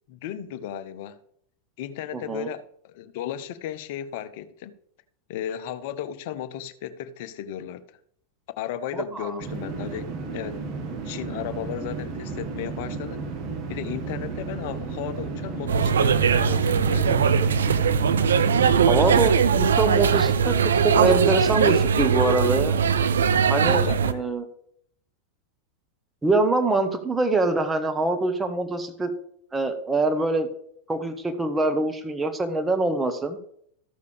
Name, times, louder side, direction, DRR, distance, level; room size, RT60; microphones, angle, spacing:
voice 1, 0.1-1.2 1.8-4.7 5.3-7.8 8.6-10.6 11.0-13.2 13.7-17.5 23.6-24.2, left 10 dB, 50° left, 13 dB, 0.7 m, -35 dB
voice 2, 2.1-2.5 8.9-9.3 18.9-20.6 20.8-22.8 23.5-24.4 26.2-29.1 29.5-30.5 30.9-33.4, right 2 dB, 10° right, 7 dB, 1.2 m, -24 dB
sound 1, 9.4-19.2, right 4 dB, 40° right, 1.4 m, -33 dB
sound 2, 15.7-24.1, right 6 dB, 65° right, 0.5 m, -20 dB
14.0 x 6.7 x 3.4 m, 0.68 s
figure-of-eight pair, 90°, 0 cm